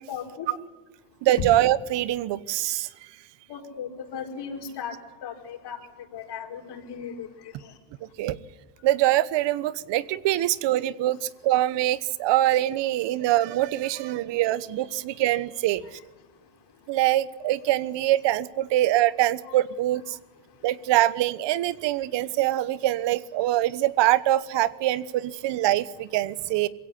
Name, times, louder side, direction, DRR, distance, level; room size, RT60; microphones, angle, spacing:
voice 1, 0.1-0.5 3.5-5.8 6.1-7.8, left 7 dB, 60° left, 4 dB, 4.9 m, -37 dB
voice 2, 1.2-2.9 8.2-8.4 8.8-15.8 16.9-20.2 20.6-26.7, right 14 dB, 65° right, 18 dB, 1.2 m, -24 dB
22.0 x 16.5 x 9.9 m, 1.2 s
supercardioid pair, 95°, 46 cm